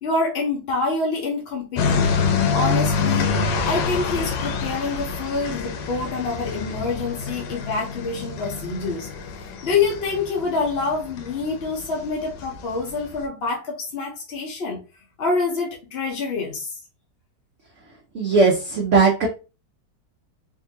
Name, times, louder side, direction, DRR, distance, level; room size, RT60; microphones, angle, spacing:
voice 1, 0.0-2.1 2.5-3.3 3.6-9.1 9.4-14.8 15.2-16.8, left 3 dB, 60° left, 0 dB, 0.6 m, -26 dB
sound 1, 1.8-13.2, left 5 dB, 90° left, 1.3 m, -26 dB
voice 2, 18.1-19.3, right 4 dB, 65° right, 1 dB, 0.7 m, -18 dB
3.7 x 2.6 x 2.7 m, 0.32 s
omnidirectional pair, 1.9 m